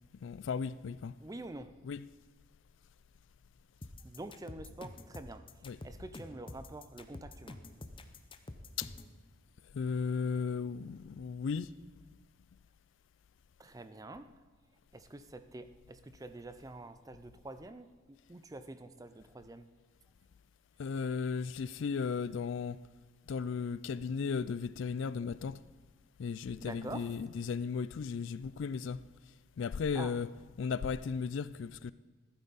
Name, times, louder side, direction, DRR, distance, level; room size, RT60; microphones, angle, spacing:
voice 1, 0.2-1.2 1.8-2.0 5.6-5.8 8.8-8.9 9.7-11.7 20.8-22.8 23.3-25.6 26.2-29.0 29.6-30.3 30.6-31.9, left 5 dB, 65° left, 0.3 m, -35 dB
voice 2, 1.2-1.7 4.0-7.6 13.6-14.4 14.9-19.7 26.6-27.1 29.9-30.2, right 2 dB, 15° right, 0.5 m, -47 dB
sound 1, 3.8-9.1, left 2 dB, 25° left, 0.6 m, -48 dB
14.5 x 12.0 x 4.0 m
head